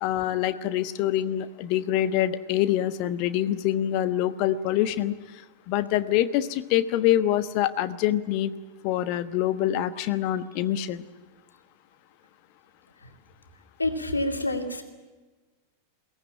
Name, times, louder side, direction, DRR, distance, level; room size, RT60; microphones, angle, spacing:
voice 1, 0.0-5.1 5.7-8.5 8.8-11.0, left 12 dB, 45° left, 11 dB, 1.2 m, -25 dB
voice 2, 13.8-14.8, left 1 dB, 80° left, 4 dB, 2.5 m, -27 dB
22.0 x 18.5 x 9.0 m, 1.3 s
figure-of-eight pair, 90°, 0 cm